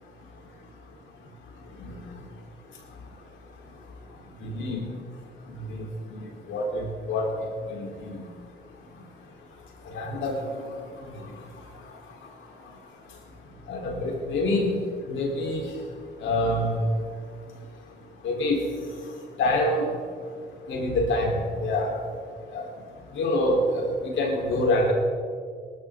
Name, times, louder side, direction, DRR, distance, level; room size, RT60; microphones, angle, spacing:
voice 1, 4.4-4.9 5.5-5.8 6.2-7.4 7.7-8.2 9.9-10.7 13.7-14.8 15.1-15.7 16.2-16.9 18.2-18.7 19.4-19.9 20.7-21.9 22.5-22.6 23.2-24.9, left 1 dB, 75° left, -1 dB, 4.0 m, -26 dB
20.0 x 12.0 x 3.8 m, 2.1 s
cardioid pair, 90°, 20 cm